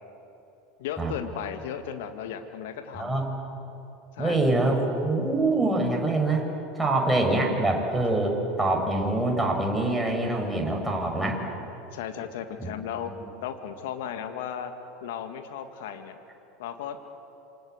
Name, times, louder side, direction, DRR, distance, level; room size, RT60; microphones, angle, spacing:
voice 1, 0.8-3.2 4.1-4.8 11.9-13.1 13.4-14.7 15.0-16.2 16.6-17.1, left 8 dB, 65° left, 7 dB, 2.1 m, -35 dB
voice 2, 3.0-3.3 4.2-6.5 6.7-11.4 12.6-12.7, right 2 dB, 5° right, 0 dB, 6.2 m, -25 dB
27.0 x 25.0 x 8.1 m, 3.0 s
figure-of-eight pair, 80°, 0 cm